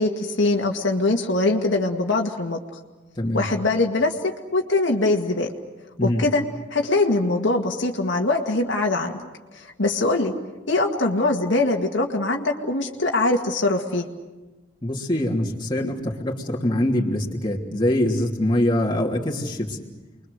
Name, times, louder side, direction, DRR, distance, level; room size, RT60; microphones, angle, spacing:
voice 1, 0.0-2.6 3.3-5.5 6.0-6.4 6.7-9.3 9.5-10.3 10.7-14.0, left 2 dB, 80° left, 2 dB, 2.0 m, -22 dB
voice 2, 3.2-3.5 6.0-6.2 14.8-19.8, left 1 dB, 25° left, -3 dB, 3.0 m, -23 dB
29.5 x 23.0 x 6.7 m, 1.2 s
head